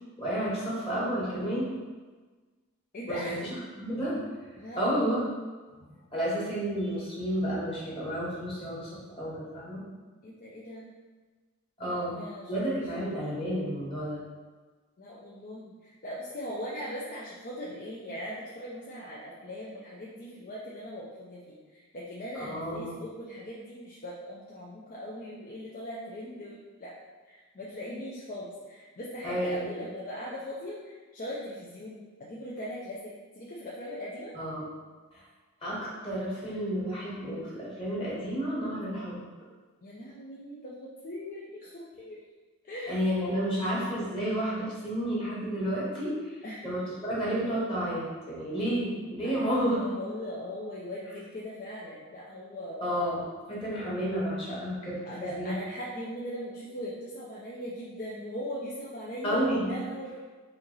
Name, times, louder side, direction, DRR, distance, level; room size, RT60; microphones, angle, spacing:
voice 1, 0.2-1.7 3.1-3.3 3.8-4.2 4.7-5.2 6.1-9.8 11.8-12.1 12.5-14.2 22.4-22.9 29.2-29.6 34.3-34.6 35.1-35.2 35.6-39.2 42.9-46.1 46.6-49.8 52.8-53.2 53.5-55.6 59.2-59.7, equal, 25° left, -7 dB, 1.4 m, -31 dB
voice 2, 2.9-3.4 4.6-4.8 10.2-10.9 11.8-12.9 15.0-26.9 27.2-34.3 39.8-42.2 42.6-43.2 46.4-46.6 49.2-49.5 49.8-53.1 53.7-53.9 55.0-60.2, equal, 40° left, -6 dB, 0.6 m, -40 dB
4.5 x 2.8 x 3.8 m, 1.3 s
head